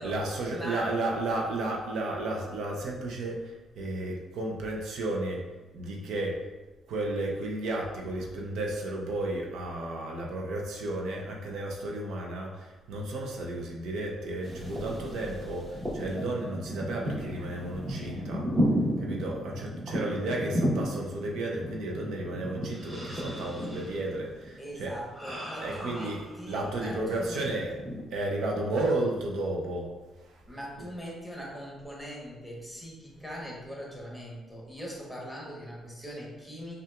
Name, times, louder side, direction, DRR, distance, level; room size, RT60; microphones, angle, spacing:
voice 1, 0.0-5.4 5.7-6.5 6.9-18.5 19.0-24.9 25.6-26.2 26.5-27.7 28.1-29.9 30.2-30.4, right 2 dB, 80° right, -1 dB, 0.6 m, -33 dB
voice 2, 0.5-0.9 24.6-27.5 30.5-36.8, equal, ahead, -3 dB, 1.1 m, -41 dB
Peaceful Mountain Noises, 14.4-26.8 27.3-28.1, equal, 20° right, 1.2 m, -34 dB
5.4 x 2.4 x 2.4 m, 1.2 s
cardioid pair, 90°, 0 cm